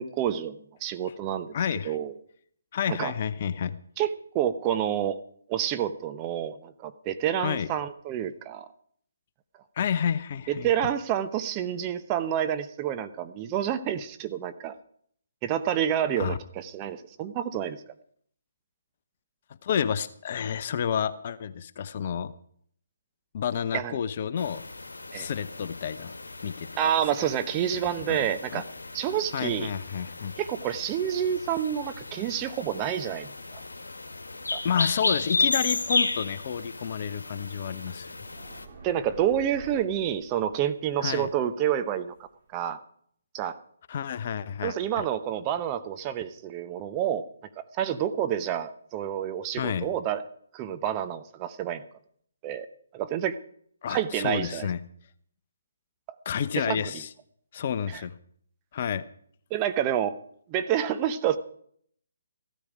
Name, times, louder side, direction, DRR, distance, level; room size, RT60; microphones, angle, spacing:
voice 1, 0.0-1.5 1.8-2.1 2.9-3.1 4.0-5.2 5.5-8.6 10.5-14.7 15.4-17.8 23.7-24.0 25.1-25.3 26.8-28.6 28.9-29.7 30.4-33.6 34.5-34.6 38.8-42.1 42.5-42.8 43.3-43.6 44.6-47.2 47.6-50.2 50.5-51.8 52.4-52.7 52.9-53.4 53.9-54.7 56.6-56.8 57.9-58.0 59.5-60.1 60.5-61.4, right 10 dB, 25° right, 10 dB, 0.9 m, -28 dB
voice 2, 1.5-1.9 2.7-3.7 7.4-7.7 9.8-10.9 16.2-16.4 19.6-22.3 23.3-24.6 25.1-26.1 26.4-26.9 27.2-27.3 27.7-28.6 29.3-30.3 34.6-38.1 41.0-41.3 43.9-45.1 49.5-49.9 53.8-54.8 56.2-57.1 57.5-58.1 58.7-59.0, left 8 dB, 40° left, 14 dB, 0.8 m, -30 dB
sound 1, 24.4-38.6, left 3 dB, 75° left, 1.8 m, -34 dB
sound 2, 37.7-42.6, right 3 dB, 40° right, 4.1 m, -50 dB
15.5 x 13.0 x 4.9 m, 0.62 s
figure-of-eight pair, 140°, 0 cm